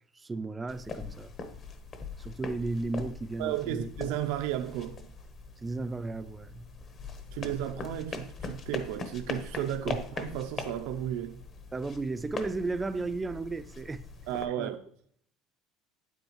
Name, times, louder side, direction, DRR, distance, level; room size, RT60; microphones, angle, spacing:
voice 1, 0.1-1.3 2.2-3.9 5.6-6.7 7.4-7.5 9.9-10.0 11.7-14.0 14.6-14.7, right 3 dB, 15° right, 0.3 m, -34 dB
sound 1, 0.7-14.5, left 4 dB, 35° left, 0.9 m, -41 dB
voice 2, 3.4-5.1 7.3-11.4 14.3-14.8, right 11 dB, 75° right, 0.5 m, -33 dB
9.1 x 8.1 x 3.0 m
cardioid pair, 145°, 0 cm